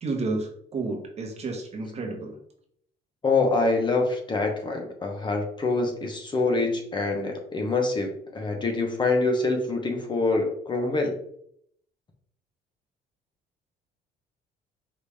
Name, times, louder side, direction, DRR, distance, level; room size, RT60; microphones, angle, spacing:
voice 1, 0.0-2.3, right 3 dB, 40° right, 2 dB, 1.1 m, -31 dB
voice 2, 3.2-11.2, left 3 dB, 25° left, 3 dB, 0.8 m, -25 dB
5.0 x 2.6 x 3.4 m, 0.67 s
cardioid pair, 110°, 17 cm